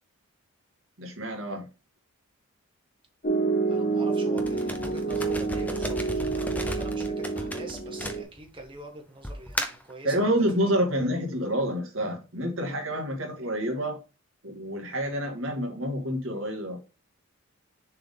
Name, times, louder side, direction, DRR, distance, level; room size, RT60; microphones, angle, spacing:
voice 1, 1.0-1.7 10.0-14.0 14.4-16.8, equal, 60° right, 2.0 m, -28 dB
Piano, 3.2-8.2, right 4 dB, 35° left, 1.0 m, -28 dB
voice 2, 3.7-10.5 14.9-15.1, right 2 dB, 25° right, 1.4 m, -44 dB
sound 1, 4.4-8.7 9.2-9.9, left 1 dB, 5° left, 0.5 m, -35 dB
6.7 x 3.8 x 3.8 m
head